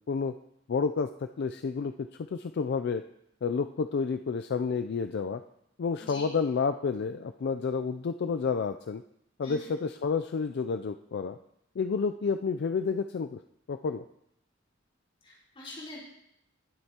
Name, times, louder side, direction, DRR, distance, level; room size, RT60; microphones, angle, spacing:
voice 1, 0.7-3.0 3.4-5.4 5.8-9.0 9.4-11.4 11.8-13.4 13.7-14.0, left 5 dB, 55° left, 8 dB, 0.4 m, -30 dB
voice 2, 9.4-9.7 15.2-16.0, left 1 dB, 30° left, -5 dB, 4.4 m, -44 dB
19.0 x 7.8 x 2.9 m, 0.76 s
head